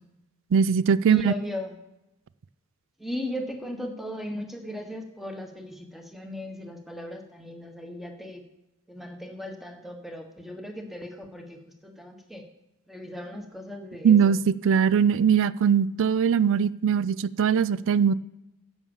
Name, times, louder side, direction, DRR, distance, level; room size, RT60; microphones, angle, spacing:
voice 1, 0.5-1.3 14.0-14.4 14.6-18.1, right 7 dB, 60° right, 19 dB, 0.4 m, -21 dB
voice 2, 1.0-1.7 3.0-8.4 8.9-12.4 12.9-14.4, left 1 dB, ahead, 4 dB, 1.4 m, -37 dB
10.5 x 7.1 x 7.2 m, 0.93 s
head